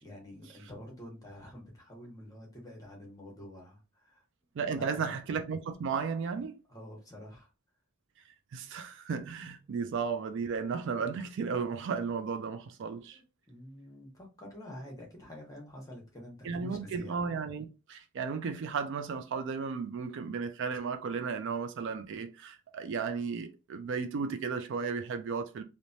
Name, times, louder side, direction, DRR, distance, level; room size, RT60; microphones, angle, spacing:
voice 1, 0.0-4.2 4.7-5.2 6.7-7.5 13.1-17.2, left 1 dB, 15° left, 0.9 m, -48 dB
voice 2, 4.6-6.5 8.5-13.2 16.4-25.6, right 5 dB, 60° right, 0.3 m, -34 dB
3.1 x 2.1 x 2.6 m
head